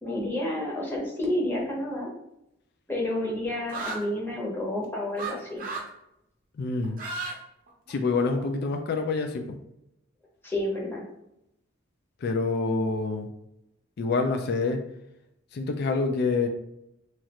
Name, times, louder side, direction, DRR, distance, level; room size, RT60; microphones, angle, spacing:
voice 1, 0.0-2.1 2.9-5.6 10.4-11.0, left 1 dB, 10° left, -3 dB, 0.7 m, -30 dB
sound 1, 3.7-4.0 5.2-5.3 5.6-5.9 6.8-7.3 7.7-8.4, right 3 dB, 45° right, 0.6 m, -34 dB
voice 2, 6.6-7.0 7.9-9.6 12.2-13.3 14.0-14.8 15.5-16.5, left 3 dB, 55° left, 5 dB, 0.3 m, -27 dB
3.0 x 2.4 x 2.8 m, 0.82 s
head